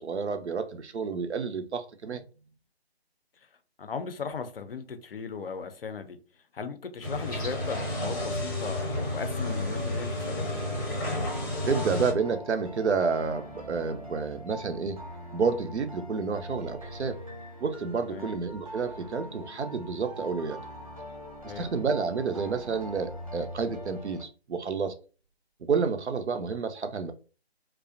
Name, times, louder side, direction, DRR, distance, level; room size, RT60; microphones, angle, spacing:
voice 1, 0.0-2.2 11.7-15.0 15.3-17.2 17.6-20.6 21.4-24.9 25.6-27.1, right 5 dB, 90° right, 0.5 m, -30 dB
voice 2, 3.8-6.2 6.5-10.4 18.0-18.4 21.5-21.8, left 5 dB, 60° left, 0.5 m, -37 dB
sound 1, 7.0-12.1, left 1 dB, 20° left, 0.6 m, -31 dB
sound 2, 10.4-24.2, equal, 35° right, 0.4 m, -43 dB
2.4 x 2.1 x 2.5 m
figure-of-eight pair, 155°, 33 cm